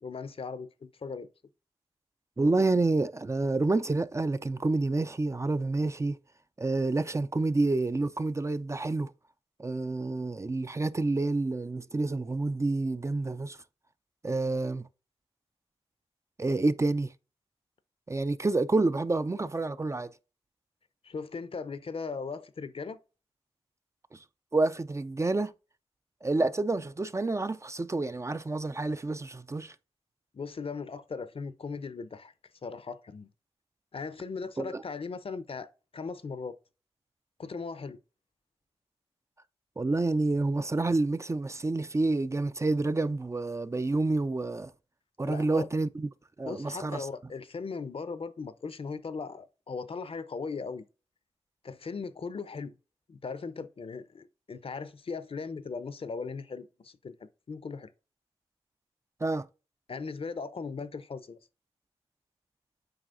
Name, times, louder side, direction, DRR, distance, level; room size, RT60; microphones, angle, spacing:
voice 1, 0.0-1.3 21.0-23.0 30.3-32.3 32.6-33.3 33.9-36.6 37.4-38.0 45.2-45.7 46.5-50.8 51.6-52.8 53.1-57.9 59.9-61.4, left 4 dB, 60° left, 0.6 m, -38 dB
voice 2, 2.4-6.2 6.6-9.1 9.6-13.6 14.2-14.9 16.4-17.1 18.1-20.1 24.1-24.2 24.5-25.5 26.2-29.7 34.6-34.8 39.8-44.7 45.2-46.1 46.4-47.1 59.2-59.5, right 2 dB, 25° right, 0.4 m, -28 dB
7.8 x 4.9 x 2.6 m
cardioid pair, 60°, 11 cm